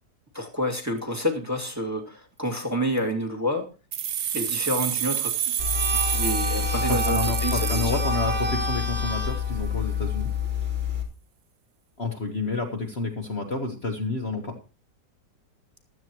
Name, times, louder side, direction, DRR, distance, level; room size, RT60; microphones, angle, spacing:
voice 1, 0.3-3.7 4.3-5.6 6.0-8.0, equal, 10° right, 2 dB, 2.3 m, -29 dB
sound 1, 3.9-8.7, right 10 dB, 55° right, 0.8 m, -29 dB
sound 2, 5.6-11.0, left 4 dB, 35° right, 3.1 m, -27 dB
voice 2, 6.9-10.3 12.0-14.6, left 3 dB, 40° left, 3 dB, 1.6 m, -30 dB
15.5 x 12.5 x 3.0 m, 0.32 s
omnidirectional pair, 1.8 m